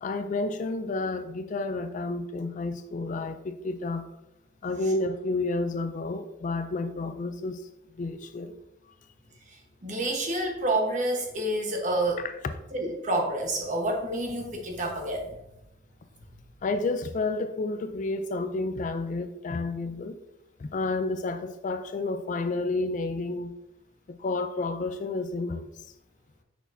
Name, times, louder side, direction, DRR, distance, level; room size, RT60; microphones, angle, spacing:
voice 1, 0.0-4.1 4.6-8.5 12.2-12.6 16.6-20.2 20.6-23.5 24.1-25.7, left 3 dB, 40° left, 0.3 m, -30 dB
voice 2, 9.8-12.2 12.7-15.3, right 1 dB, 40° right, 1.2 m, -28 dB
6.2 x 6.1 x 2.7 m
head